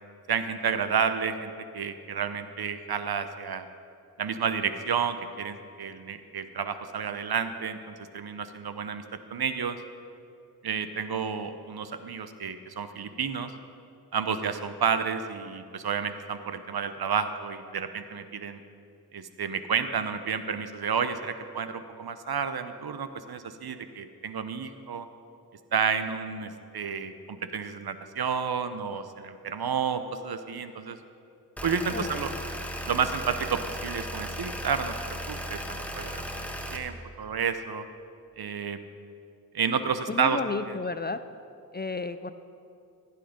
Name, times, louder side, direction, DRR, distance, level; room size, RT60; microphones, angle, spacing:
voice 1, 0.3-3.7 4.2-9.0 9.3-9.8 10.6-13.5 14.1-18.6 19.1-25.1 25.7-31.0 31.6-32.3 32.9-36.5 36.7-37.8 38.4-38.8 39.5-40.4 40.7-40.8, right 6 dB, 70° right, 10 dB, 0.8 m, -31 dB
sound 1, 31.6-36.8, equal, 5° left, 1.3 m, -36 dB
voice 2, 31.9-32.4 40.1-41.2 41.7-42.3, left 4 dB, 25° left, 11 dB, 0.5 m, -32 dB
15.5 x 8.4 x 5.1 m, 2.5 s
cardioid pair, 45°, 39 cm